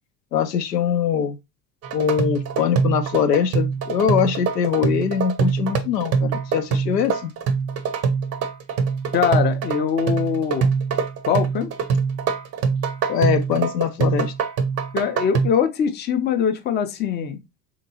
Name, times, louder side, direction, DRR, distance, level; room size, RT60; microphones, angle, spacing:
voice 1, 0.3-1.4 1.9-7.3 13.1-14.3, left 8 dB, 85° left, 0.6 m, -22 dB
sound 1, 1.8-15.5, right 5 dB, 30° right, 0.6 m, -24 dB
voice 2, 9.1-10.7 11.3-11.7 14.9-17.4, left 7 dB, 20° left, 0.5 m, -22 dB
3.6 x 2.9 x 2.7 m
figure-of-eight pair, 70°, 48 cm